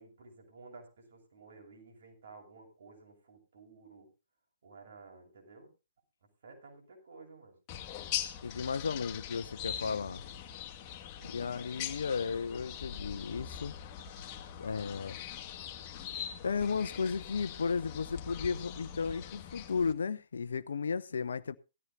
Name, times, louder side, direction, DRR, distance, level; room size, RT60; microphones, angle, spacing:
voice 1, 0.0-4.1 4.6-5.7 6.4-7.6 11.2-11.6, right 3 dB, 55° right, 6.7 m, -54 dB
sound 1, 7.7-19.9, left 9 dB, 30° left, 1.9 m, -42 dB
voice 2, 8.4-10.2 11.2-13.7 14.6-15.2 16.4-21.6, left 5 dB, 65° left, 0.7 m, -34 dB
18.0 x 14.0 x 2.7 m
figure-of-eight pair, 120°, 0 cm